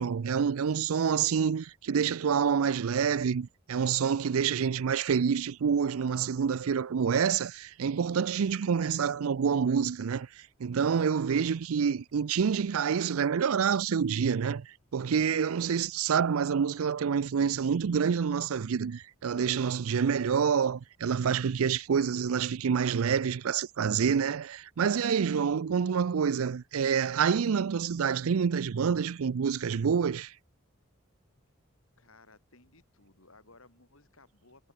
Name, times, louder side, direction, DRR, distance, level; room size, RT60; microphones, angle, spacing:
voice 1, 0.0-30.3, right 7 dB, 85° right, 0.4 m, -27 dB
voice 2, 32.0-34.7, left 3 dB, 75° left, 7.8 m, -59 dB
head